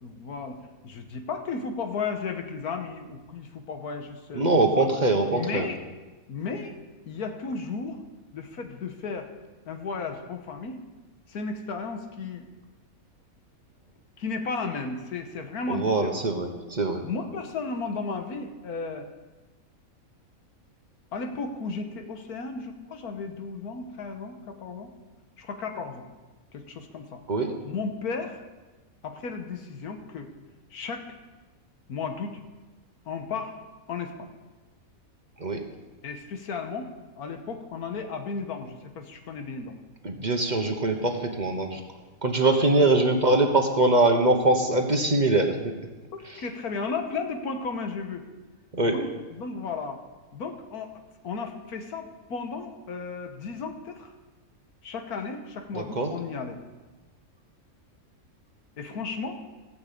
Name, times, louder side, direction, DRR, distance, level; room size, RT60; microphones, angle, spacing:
voice 1, 0.0-4.5 5.3-5.8 6.3-6.8 7.1-8.0 8.3-9.3 9.7-10.8 11.3-12.5 14.2-16.2 17.0-19.1 21.1-24.9 25.4-26.0 26.5-27.2 27.6-28.4 29.0-30.3 30.7-31.1 31.9-32.4 33.0-33.6 33.9-34.3 36.0-36.9 37.2-39.7 42.8-43.1 46.4-48.2 48.8-50.0 50.3-54.1 54.8-56.6 58.8-59.4, left 4 dB, 90° left, 6 dB, 1.7 m, -34 dB
voice 2, 4.3-5.7 15.7-17.0 27.3-27.5 35.4-35.6 40.0-41.8 42.2-45.6 48.7-48.9 55.7-56.1, right 2 dB, 35° right, 4 dB, 1.1 m, -23 dB
16.0 x 6.1 x 8.4 m, 1.2 s
omnidirectional pair, 1.5 m